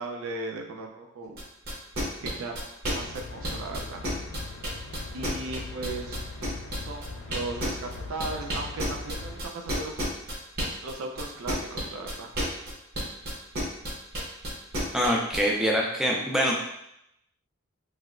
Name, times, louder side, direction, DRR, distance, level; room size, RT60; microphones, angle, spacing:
voice 1, 0.0-1.4 2.2-4.0 5.1-6.2 6.8-10.0 10.8-12.3, right 2 dB, 75° right, 2 dB, 0.4 m, -37 dB
sound 1, 1.4-15.4, equal, 50° right, 0.8 m, -31 dB
sound 2, 2.9-9.4, left 3 dB, 60° left, 0.4 m, -40 dB
voice 2, 14.9-16.5, equal, ahead, -2 dB, 0.4 m, -24 dB
3.1 x 2.8 x 2.4 m, 0.80 s
head